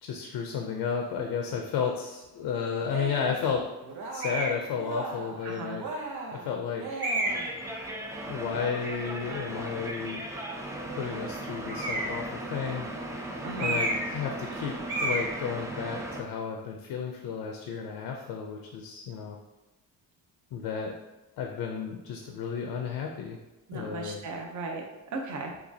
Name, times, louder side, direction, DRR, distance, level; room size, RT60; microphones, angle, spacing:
voice 1, 0.0-3.7 4.1-5.8 6.3-6.9 8.3-10.3 10.9-12.9 13.5-19.4 20.5-20.9 21.4-23.4 23.7-24.2, left 6 dB, 85° left, 2 dB, 0.6 m, -33 dB
Cheering, 2.8-3.5 3.8-4.5 4.8-5.4 5.8-7.6, right 3 dB, 80° right, 0.9 m, -38 dB
sound 1, 4.2-4.6 5.4-5.5 7.0-7.5 11.7-12.2 13.6-14.2 14.4-14.6 14.9-15.3, right 2 dB, 30° right, 1.1 m, -30 dB
voice 2, 5.4-5.8 13.4-13.8 23.7-24.8 25.1-25.5, right 3 dB, 50° right, 1 dB, 0.8 m, -36 dB
sound 2, 7.3-16.2, right 1 dB, 10° right, 0.3 m, -37 dB
6.7 x 2.4 x 2.7 m, 1.0 s
cardioid pair, 160°, 38 cm